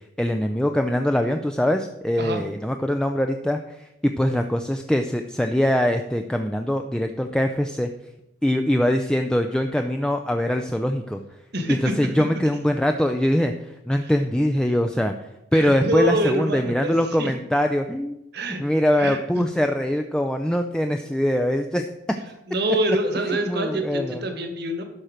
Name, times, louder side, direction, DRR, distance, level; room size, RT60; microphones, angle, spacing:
voice 1, 0.2-7.9 8.4-11.2 11.7-13.5 13.9-15.1 15.5-18.2 18.6-21.9 23.5-24.2, equal, 5° left, 5 dB, 0.4 m, -23 dB
voice 2, 11.5-11.9 14.0-14.1 15.5-17.3 18.3-18.6 19.0-19.4 22.5-24.8, right 1 dB, 60° right, 6 dB, 1.5 m, -26 dB
11.5 x 4.4 x 6.5 m, 0.87 s
head